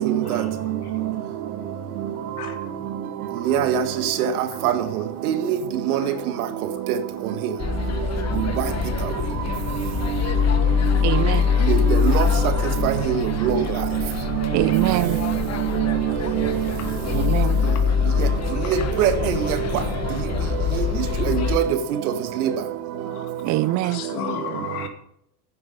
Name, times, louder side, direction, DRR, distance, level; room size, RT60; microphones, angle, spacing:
voice 1, 0.2-1.1 2.1-2.8 3.4-3.5 4.5-4.6 5.9-6.4 6.7-6.8 8.2-8.3 9.4-10.2 10.6-11.0 14.3-14.8 16.8-16.9 17.7-17.8 18.3-18.8 19.8-19.9 20.1-21.4 23.0-24.9, left 7 dB, 85° left, 2.6 m, -39 dB
voice 2, 3.5-4.3 4.6-4.7 5.2-5.6 5.9-6.0 11.7-12.3 12.8-13.1 13.4-13.6 19.0-19.1 21.3-21.6 22.4-22.5, right 10 dB, 75° right, 1.7 m, -21 dB
sound 1, 7.6-21.6, left 7 dB, 35° left, 1.4 m, -24 dB
voice 3, 11.0-11.4 14.5-15.2 17.1-17.6 23.4-24.0, right 17 dB, 45° right, 0.4 m, -23 dB
11.0 x 9.8 x 5.3 m
hypercardioid pair, 85°, 44 cm